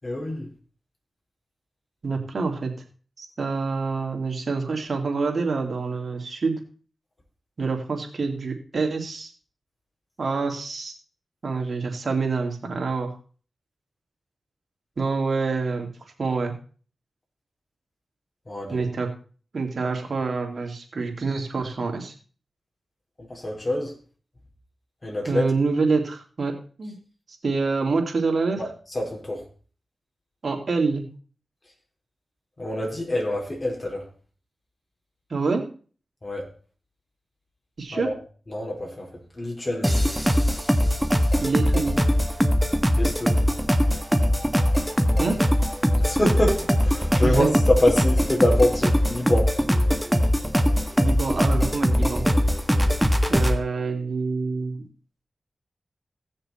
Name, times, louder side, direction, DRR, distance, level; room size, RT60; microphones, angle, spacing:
voice 1, 0.0-0.5 18.5-18.8 23.3-23.9 25.0-25.5 28.6-29.4 32.6-34.1 36.2-36.5 37.9-38.2 38.5-39.1 39.4-39.9 42.9-43.5 46.0-49.5, left 1 dB, 35° left, 0 dB, 4.6 m, -25 dB
voice 2, 2.0-2.7 3.2-6.6 7.6-9.3 10.2-10.9 11.4-13.1 15.0-15.9 16.2-16.5 18.7-19.1 19.5-22.1 25.3-26.9 27.4-28.6 30.4-31.1 35.3-35.7 37.8-38.1 41.4-42.0 45.2-45.4 47.2-47.5 51.0-52.2 53.3-54.8, right 4 dB, 65° right, 3 dB, 2.6 m, -26 dB
sound 1, 39.8-53.6, equal, 5° right, 1.6 m, -21 dB
17.0 x 6.6 x 4.3 m, 0.40 s
cardioid pair, 40°, 0 cm